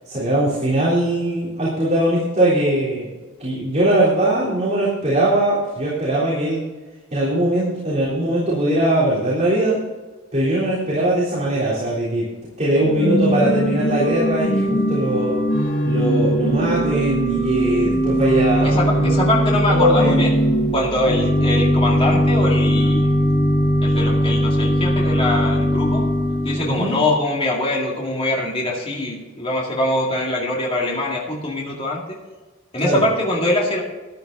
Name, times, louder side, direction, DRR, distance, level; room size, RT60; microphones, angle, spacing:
voice 1, 0.1-3.1 3.4-6.6 7.1-9.8 10.3-12.2 12.6-15.4 15.8-19.3 19.7-20.3 26.7-27.0 32.8-33.0, right 1 dB, 35° right, -7 dB, 3.6 m, -20 dB
Organ / Church bell, 12.7-26.8, equal, 55° left, 3.4 m, -20 dB
voice 2, 18.6-20.3 20.7-23.1 23.8-26.0 26.4-32.0 32.7-33.8, left 1 dB, 25° left, -2 dB, 2.3 m, -23 dB
13.5 x 11.0 x 4.0 m, 1.2 s
head